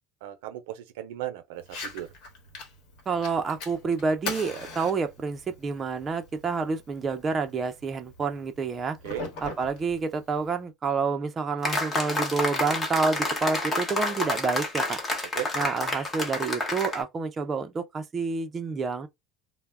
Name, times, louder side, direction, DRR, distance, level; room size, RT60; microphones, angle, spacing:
voice 1, 0.2-2.1 9.0-9.2 15.3-15.5, right 13 dB, 85° right, 0.5 m, -36 dB
Fire, 1.6-10.6, left 2 dB, 65° left, 1.0 m, -42 dB
voice 2, 3.1-9.0 9.4-15.0 15.5-19.1, right 4 dB, 25° right, 0.4 m, -28 dB
sound 1, 11.6-17.0, left 2 dB, 20° left, 0.8 m, -29 dB
2.2 x 2.0 x 3.2 m
supercardioid pair, 125°, 0 cm